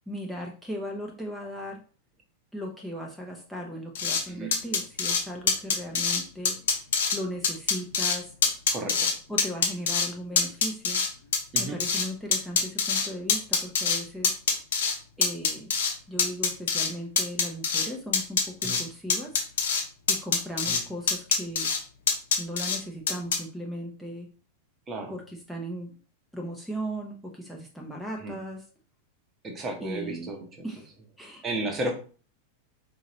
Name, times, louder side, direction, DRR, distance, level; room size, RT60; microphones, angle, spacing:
voice 1, 0.0-1.8 2.5-6.6 7.1-8.3 9.3-11.0 11.6-14.3 15.2-15.7 16.1-19.3 20.1-21.7 22.4-24.3 25.1-25.9 26.3-28.6 29.8-30.3 30.6-30.9 31.2-31.4, equal, ahead, 0 dB, 0.8 m, -37 dB
sound 1, 3.9-4.2 4.5-5.2 5.5-6.2 6.4-7.2 7.4-8.2 8.4-9.1 9.4-10.1 10.3-12.1 12.3-14.0 14.2-14.9 15.2-15.9 16.2-16.9 17.2-17.9 18.1-18.8 19.1-19.8 20.1-20.8 21.1-21.8 22.1-22.8 23.1-23.4, left 6 dB, 60° left, 0.9 m, -24 dB
voice 2, 8.7-9.1 11.5-11.8 18.6-18.8 20.7-20.8 24.9-25.1 28.2-28.4 29.4-30.4 31.4-31.9, right 2 dB, 25° right, 3 dB, 1.1 m, -33 dB
4.9 x 2.7 x 3.1 m, 0.39 s
figure-of-eight pair, 90°, 0 cm